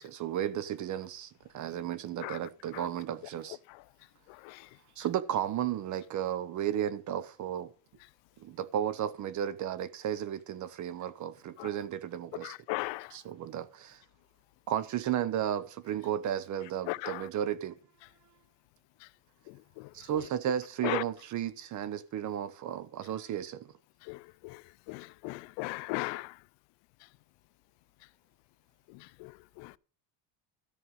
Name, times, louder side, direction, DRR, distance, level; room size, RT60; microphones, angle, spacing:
voice 1, 0.0-3.6 5.0-7.7 8.4-12.6 13.1-14.0 14.7-17.8 19.9-23.7, right 10 dB, 45° right, 0.8 m, -34 dB
voice 2, 12.7-13.0 16.9-17.0 20.8-21.0 24.9-25.0 25.2-26.2, left 24 dB, 85° left, 0.6 m, -33 dB
13.5 x 6.6 x 5.5 m
cardioid pair, 155°, 42 cm